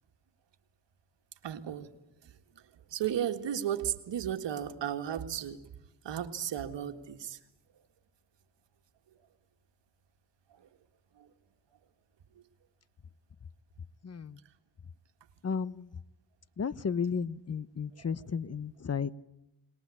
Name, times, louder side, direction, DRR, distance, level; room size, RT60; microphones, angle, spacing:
voice 1, 1.4-1.9 2.9-5.6 6.0-7.4 18.0-18.1 18.3-18.4, right 10 dB, 85° right, 8 dB, 1.8 m, -34 dB
voice 2, 14.0-14.4 15.4-15.9 16.6-19.1, left 6 dB, 35° left, 18 dB, 0.9 m, -33 dB
21.5 x 20.5 x 8.3 m, 0.93 s
cardioid pair, 70°, 42 cm